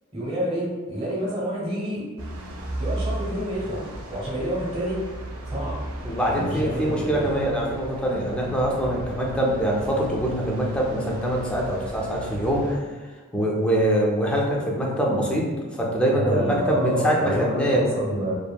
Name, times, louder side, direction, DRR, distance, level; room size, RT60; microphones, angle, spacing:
voice 1, 0.1-2.1 2.8-5.0 5.5-5.8 6.2-7.3 16.1-18.4, right 1 dB, 25° right, -6 dB, 0.9 m, -28 dB
sound 1, 2.2-12.8, right 1 dB, 90° right, 0.4 m, -36 dB
voice 2, 6.0-12.8 13.3-17.9, equal, 5° left, -3 dB, 0.4 m, -24 dB
2.8 x 2.5 x 2.2 m, 1.3 s
head